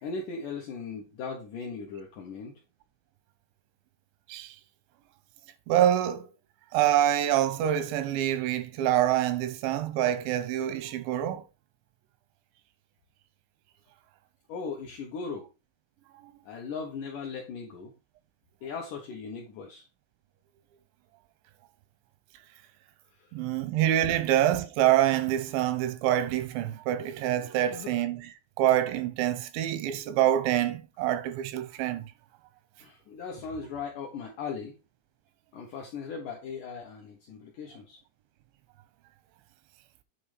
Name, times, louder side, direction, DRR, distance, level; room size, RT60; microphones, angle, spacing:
voice 1, 0.0-2.5 14.5-15.5 16.4-17.9 18.6-19.9 23.1-23.4 27.5-27.9 32.8-34.8 35.5-38.0, left 5 dB, 75° left, 1.9 m, -38 dB
voice 2, 5.7-6.3 6.7-11.4 16.2-16.3 23.3-28.3 28.6-32.1, right 12 dB, 90° right, 3.2 m, -26 dB
8.7 x 3.8 x 5.0 m
omnidirectional pair, 5.1 m